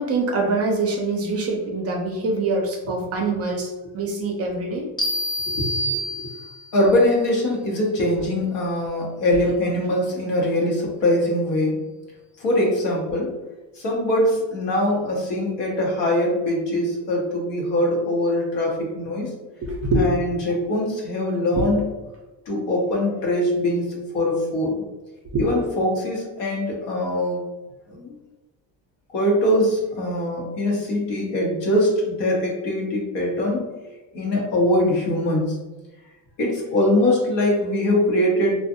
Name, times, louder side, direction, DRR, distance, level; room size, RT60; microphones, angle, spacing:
voice 1, 0.0-4.8 19.6-20.1 21.5-21.6 25.3-25.5, right 2 dB, 35° right, 1 dB, 0.5 m, -24 dB
sound 1, 5.0-6.8, equal, 10° left, 0.6 m, -27 dB
voice 2, 5.5-6.3 6.7-11.8 12.4-13.3 13.8-19.3 20.0-21.9 22.5-24.9 25.4-27.4 27.9-28.2 29.1-33.6 34.1-35.6 36.4-38.6, left 1 dB, 70° left, -1 dB, 0.9 m, -22 dB
2.5 x 2.3 x 2.5 m, 1.1 s
cardioid pair, 125°, 44 cm